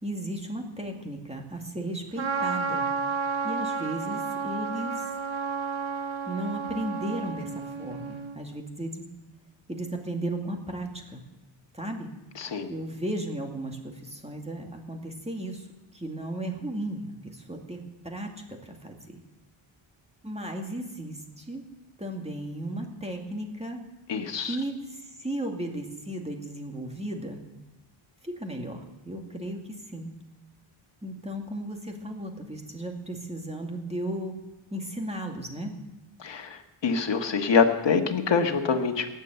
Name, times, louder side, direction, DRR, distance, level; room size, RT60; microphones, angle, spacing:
voice 1, 0.0-2.9 3.4-5.0 6.3-9.0 9.7-11.2 11.7-12.1 12.7-15.7 15.9-17.8 18.0-19.2 20.2-21.6 22.0-23.8 24.4-27.4 28.2-30.1 31.0-34.4 34.7-35.7, right 1 dB, 15° right, 2 dB, 2.2 m, -35 dB
Trumpet, 2.2-8.4, right 5 dB, 75° right, 1.3 m, -31 dB
voice 2, 12.4-12.7 24.1-24.6 36.2-39.1, left 5 dB, 60° left, 4 dB, 1.6 m, -25 dB
18.5 x 7.5 x 8.1 m, 0.98 s
wide cardioid pair, 115°, 48 cm